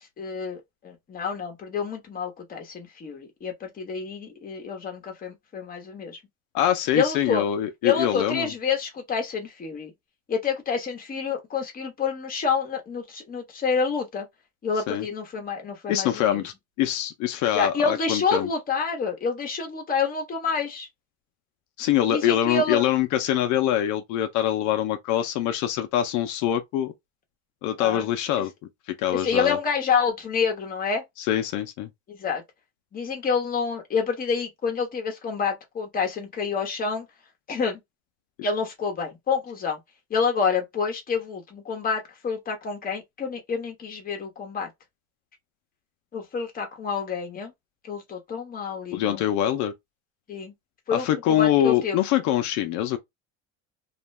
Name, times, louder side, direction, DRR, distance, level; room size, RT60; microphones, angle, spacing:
voice 1, 0.2-6.2 6.9-7.4 7.8-9.9 10.3-14.3 14.6-16.4 17.5-20.9 22.1-22.8 27.8-28.0 29.1-31.0 32.1-32.4 32.9-37.1 37.5-37.8 38.4-39.8 40.1-44.7 46.1-47.5 47.8-49.2 50.3-50.5 50.9-52.0, left 5 dB, 30° left, 0.9 m, -28 dB
voice 2, 6.5-8.5 14.9-15.1 15.9-18.5 21.8-26.9 27.6-28.5 28.9-29.6 31.2-31.9 48.9-49.7 50.9-53.0, left 11 dB, 80° left, 0.5 m, -24 dB
2.5 x 2.2 x 3.0 m
cardioid pair, 135°, 30 cm